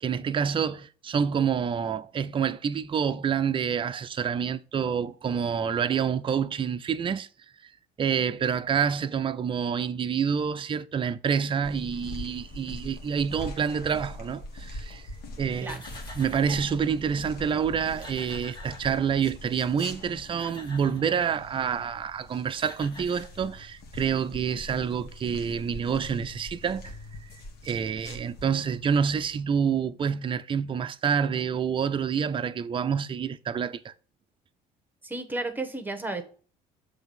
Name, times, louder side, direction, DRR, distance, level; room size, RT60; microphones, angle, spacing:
voice 1, 0.0-7.3 8.0-15.0 15.4-15.8 16.1-27.0 27.6-33.9, right 7 dB, 30° right, 0.5 m, -27 dB
sound 1, 11.6-29.4, left 1 dB, 65° left, 1.5 m, -43 dB
sound 2, 15.5-16.8 17.5-17.6 17.8-19.4 20.0-21.2 22.2-22.3 22.6-23.8, left 1 dB, 25° left, 1.5 m, -47 dB
voice 2, 35.0-36.2, right 2 dB, 10° right, 1.1 m, -32 dB
7.1 x 3.4 x 5.4 m
cardioid pair, 110°, 17 cm